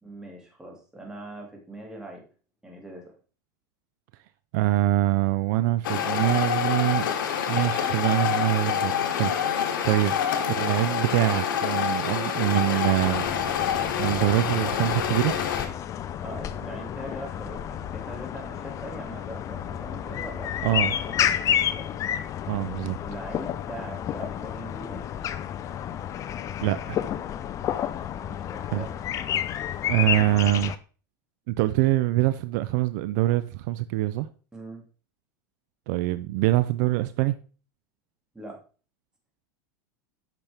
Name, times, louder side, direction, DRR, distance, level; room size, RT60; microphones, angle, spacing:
voice 1, 0.0-2.2 2.6-3.1 16.2-20.8 21.1-21.9 22.9-25.0 28.3-28.9 34.5-34.8 38.3-38.6, right 1 dB, 5° right, 0 dB, 2.3 m, -41 dB
voice 2, 4.5-7.0 7.5-10.1 10.5-13.3 14.0-15.3 20.6-20.9 22.5-23.0 26.6-27.0 28.7-28.8 29.9-30.7 31.5-34.3 35.9-37.3, right 16 dB, 60° right, 13 dB, 0.5 m, -24 dB
sound 1, 5.8-15.7, left 8 dB, 85° left, 1.4 m, -27 dB
sound 2, 13.0-30.8, left 10 dB, 30° left, 0.5 m, -31 dB
9.0 x 5.9 x 3.4 m, 0.37 s
supercardioid pair, 135°, 11 cm